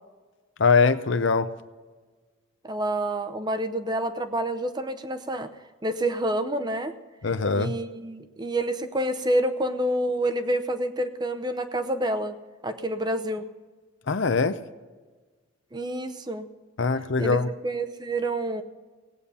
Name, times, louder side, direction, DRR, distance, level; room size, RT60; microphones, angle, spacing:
voice 1, 0.6-1.5 7.2-7.7 14.1-14.6 16.8-17.5, left 4 dB, 60° left, 12 dB, 0.6 m, -22 dB
voice 2, 2.6-5.5 5.8-6.9 7.5-12.4 12.6-13.5 15.7-16.5 17.2-17.4 17.6-18.6, right 1 dB, 20° right, 9 dB, 0.7 m, -28 dB
18.5 x 8.6 x 5.5 m, 1.4 s
head